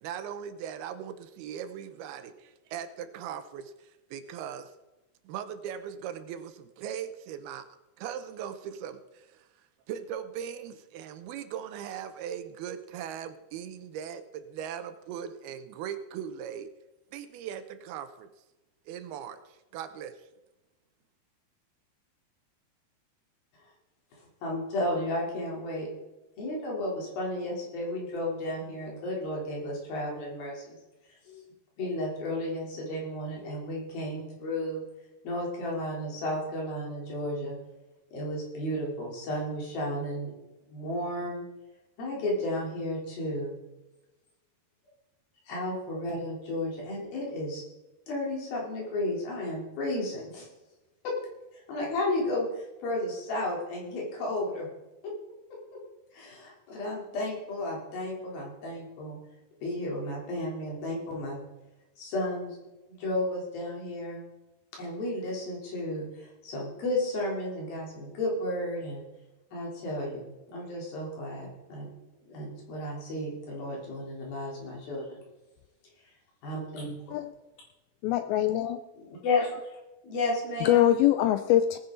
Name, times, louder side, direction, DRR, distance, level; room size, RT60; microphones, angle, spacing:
voice 1, 0.0-4.7 5.2-7.7 8.0-9.5 9.9-16.7 17.1-18.3 18.9-20.3, right 9 dB, 80° right, 10 dB, 2.7 m, -39 dB
voice 2, 24.4-25.9 26.4-30.8 31.3-31.4 31.8-34.8 35.2-37.6 38.1-40.3 40.7-41.4 42.0-43.5 45.5-47.6 48.1-50.5 51.0-51.2 51.5-54.7 55.0-55.1 55.7-55.8 56.1-59.2 59.6-61.4 62.0-62.6 62.9-64.2 64.7-69.1 69.5-71.9 72.3-75.2 76.4-77.0 79.0-79.8 80.0-80.9, left 1 dB, 65° left, -3 dB, 5.2 m, -33 dB
voice 3, 78.0-78.8 80.6-81.8, left 12 dB, 80° left, 10 dB, 2.3 m, -23 dB
19.0 x 10.0 x 3.9 m, 1.0 s
omnidirectional pair, 4.5 m